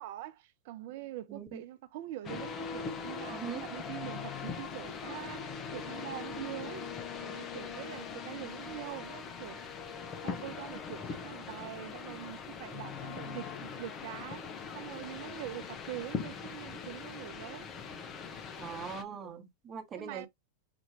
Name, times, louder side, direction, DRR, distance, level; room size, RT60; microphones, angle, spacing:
voice 1, 0.0-6.9 7.2-9.7 10.2-17.7 20.0-20.3, right 14 dB, 60° right, 0.7 m, -44 dB
voice 2, 1.3-1.6 3.3-3.6 18.6-20.3, right 7 dB, 30° right, 1.5 m, -41 dB
sound 1, 2.2-19.0, left 6 dB, 35° left, 1.1 m, -41 dB
6.1 x 2.9 x 2.8 m
hypercardioid pair, 100°, 0 cm